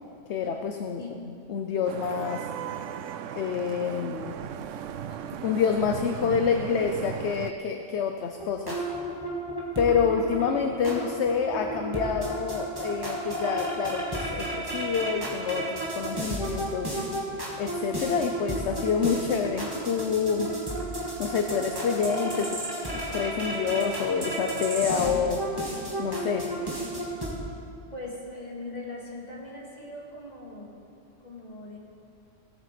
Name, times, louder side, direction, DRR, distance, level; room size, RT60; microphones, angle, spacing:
voice 1, 0.3-1.0 1.5-2.4 3.3-4.4 5.4-8.8 9.8-17.0 17.6-20.5 21.2-22.6 23.1-25.4 26.0-26.5, left 6 dB, 65° left, 5 dB, 1.0 m, -27 dB
Vehicle horn car horn honking / Traffic noise roadway noise, 1.8-7.5, right 9 dB, 85° right, 1.0 m, -37 dB
sound 1, 8.4-27.3, right 1 dB, 20° right, 2.3 m, -33 dB
voice 2, 27.9-30.7 31.2-31.8, left 2 dB, 35° left, -4 dB, 2.5 m, -40 dB
17.5 x 9.0 x 6.0 m, 2.5 s
omnidirectional pair, 1.3 m